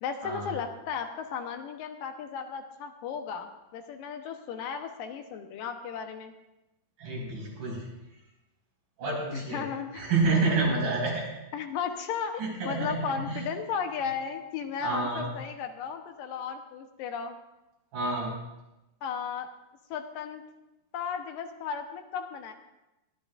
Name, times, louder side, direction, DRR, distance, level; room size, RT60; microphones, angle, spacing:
voice 1, 0.0-6.3 9.3-10.1 11.5-17.4 19.0-19.5 19.9-20.4 20.9-22.5, left 6 dB, 80° left, 6 dB, 2.7 m, -35 dB
voice 2, 7.0-7.9 9.0-9.6 9.9-11.3 12.4-13.5 14.8-15.3 17.9-18.4, right 3 dB, 85° right, -4 dB, 6.9 m, -29 dB
22.5 x 13.0 x 2.5 m, 0.96 s
omnidirectional pair, 4.0 m